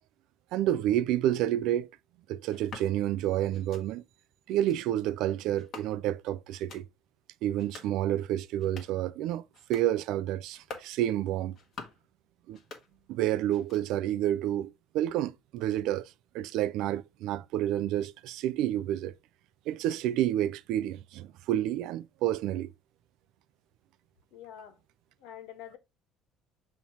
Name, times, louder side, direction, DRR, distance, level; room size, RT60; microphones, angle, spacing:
voice 1, 0.5-1.9 2.3-4.0 4.5-6.9 7.4-9.4 9.7-11.6 12.5-12.6 13.1-19.1 19.7-22.7, right 12 dB, 60° right, 0.4 m, -29 dB
sound 1, 2.5-2.9 3.5-3.8 4.5-4.8 5.5-6.2 6.5-6.9 7.5-7.9 8.5-9.0 9.5-9.9 10.5-10.9 11.5-12.1 12.5-13.2 13.5-14.1, left 4 dB, 35° left, 1.3 m, -48 dB
voice 2, 24.3-24.8 25.2-25.8, left 10 dB, 75° left, 1.3 m, -46 dB
7.1 x 3.1 x 4.3 m
cardioid pair, 175°, 0 cm